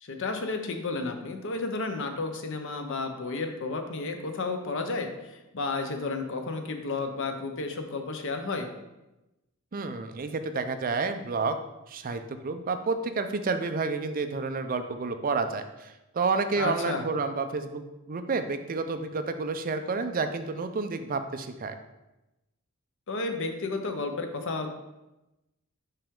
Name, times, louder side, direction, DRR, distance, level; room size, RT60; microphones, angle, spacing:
voice 1, 0.0-8.7 16.6-17.1 23.1-24.7, left 3 dB, 60° left, 6 dB, 0.7 m, -32 dB
voice 2, 9.7-11.6 11.9-21.8, right 4 dB, 40° right, 8 dB, 0.4 m, -30 dB
5.5 x 5.0 x 3.6 m, 0.99 s
head